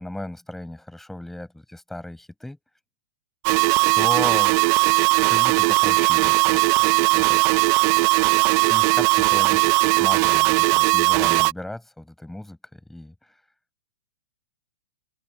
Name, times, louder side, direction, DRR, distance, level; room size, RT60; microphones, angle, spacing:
voice 1, 0.0-2.6 4.0-4.6 5.3-7.4 8.7-13.1, left 1 dB, 5° left, 7.8 m, -35 dB
sound 1, 3.4-11.5, right 25 dB, 40° right, 0.9 m, -18 dB
open air
hypercardioid pair, 125°, 7 cm